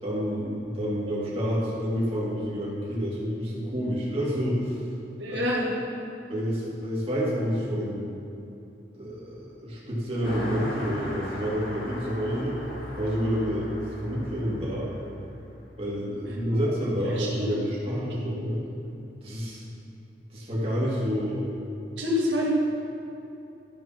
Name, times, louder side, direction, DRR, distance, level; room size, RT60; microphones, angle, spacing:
voice 1, 0.0-4.8 5.3-5.4 6.3-8.1 8.9-12.6 12.9-14.9 15.8-18.6 19.2-19.6 20.3-21.5, equal, 35° right, -7 dB, 2.3 m, -29 dB
voice 2, 5.2-5.7 16.5-16.7 17.1-17.6 17.9-18.4 22.0-22.5, left 1 dB, 85° right, -5 dB, 1.7 m, -28 dB
Car passing by, 10.2-16.1, equal, 55° left, 2.1 m, -39 dB
12.5 x 5.2 x 5.8 m, 2.8 s
head